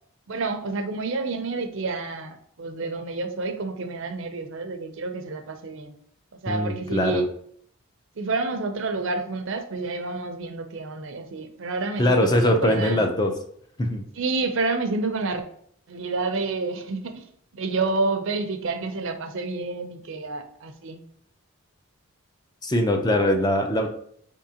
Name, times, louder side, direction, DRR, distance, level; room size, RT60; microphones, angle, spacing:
voice 1, 0.3-5.9 6.4-7.3 8.2-13.0 14.2-15.4 15.9-17.2 17.5-21.0, right 3 dB, 65° right, 7 dB, 0.6 m, -29 dB
voice 2, 6.5-7.2 12.0-13.3 13.8-14.0 22.6-23.9, left 1 dB, 20° left, 4 dB, 0.4 m, -22 dB
4.9 x 3.7 x 2.8 m, 0.64 s
head